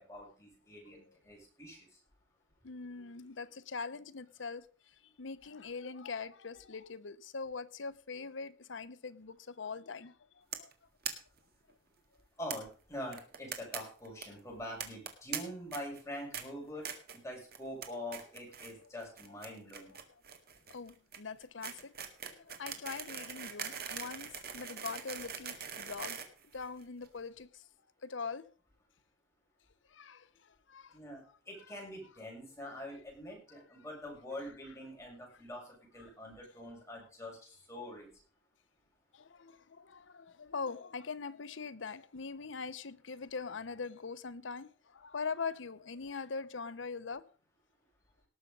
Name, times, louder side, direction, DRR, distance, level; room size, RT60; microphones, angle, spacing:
voice 1, 0.0-1.9 12.4-16.9 17.1-19.9 30.9-38.1, left 1 dB, 15° left, 6.9 m, -45 dB
voice 2, 0.9-1.2 2.6-10.7 18.8-18.9 19.9-20.0 20.7-21.9 22.2-26.2 26.5-27.7 28.0-28.5 29.9-31.0 31.7-31.8 36.0-36.1 39.1-47.3, left 5 dB, 85° left, 0.8 m, -42 dB
sound 1, 10.5-10.7 11.0-11.1 11.4-11.5 11.7-11.8 12.5-12.6 13.1-13.8 14.0-14.2 14.8-15.4 15.7-16.0 16.3-16.4 16.8-17.2 17.5-17.9 18.1-18.7 19.0-27.1, right 8 dB, 55° right, 2.0 m, -41 dB
18.5 x 7.2 x 5.3 m
head